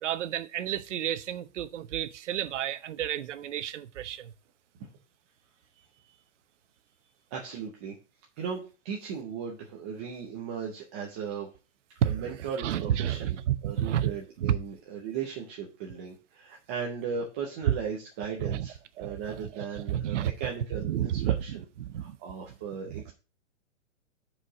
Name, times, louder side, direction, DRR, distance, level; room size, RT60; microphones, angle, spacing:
voice 1, 0.0-4.3 12.0-12.3 12.6-14.1 14.4-14.6 18.4-18.7 19.0-20.3 20.8-21.3 21.8-22.2 22.9-23.0, right 11 dB, 65° right, 0.9 m, -30 dB
voice 2, 7.3-8.0 8.4-11.5 12.0-13.4 13.6-21.6 21.9-23.1, right 6 dB, 10° right, 0.4 m, -37 dB
6.2 x 4.8 x 6.2 m
hypercardioid pair, 155°, 38 cm